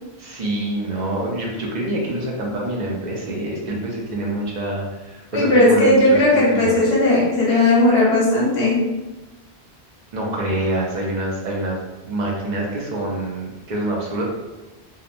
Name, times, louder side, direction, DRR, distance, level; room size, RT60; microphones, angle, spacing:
voice 1, 0.2-6.2 6.5-6.9 10.1-11.8 12.0-14.2, right 1 dB, 50° right, -2 dB, 0.6 m, -26 dB
voice 2, 5.3-8.8, left 1 dB, 80° left, -6 dB, 1.2 m, -16 dB
2.9 x 2.1 x 2.5 m, 1.1 s
omnidirectional pair, 1.1 m